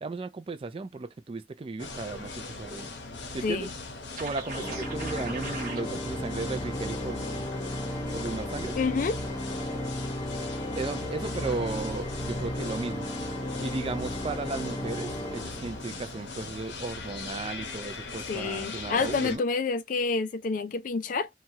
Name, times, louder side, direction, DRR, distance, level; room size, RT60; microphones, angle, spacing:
voice 1, 0.0-2.9 3.3-3.7 4.2-7.4 8.1-8.7 10.8-13.1 13.6-19.5, right 3 dB, 30° right, 0.4 m, -35 dB
sound 1, 1.8-19.4, left 3 dB, 85° left, 0.8 m, -40 dB
sound 2, 4.2-5.8, right 4 dB, 50° right, 0.8 m, -39 dB
Organ, 4.4-16.3, left 1 dB, 25° left, 0.7 m, -35 dB
voice 2, 8.8-9.2 18.3-21.3, left 4 dB, 50° left, 0.4 m, -28 dB
3.0 x 2.3 x 2.7 m
head